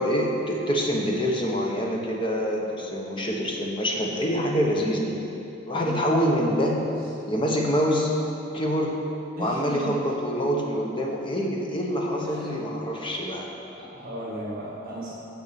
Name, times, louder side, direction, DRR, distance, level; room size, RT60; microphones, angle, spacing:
voice 1, 0.0-5.1 5.6-6.8 7.3-8.1 8.5-8.9 9.4-13.5, equal, 25° left, -1 dB, 1.1 m, -25 dB
voice 2, 9.4-10.0 12.2-12.5 13.8-15.1, equal, 50° right, -7 dB, 1.8 m, -35 dB
6.9 x 6.7 x 7.0 m, 2.8 s
head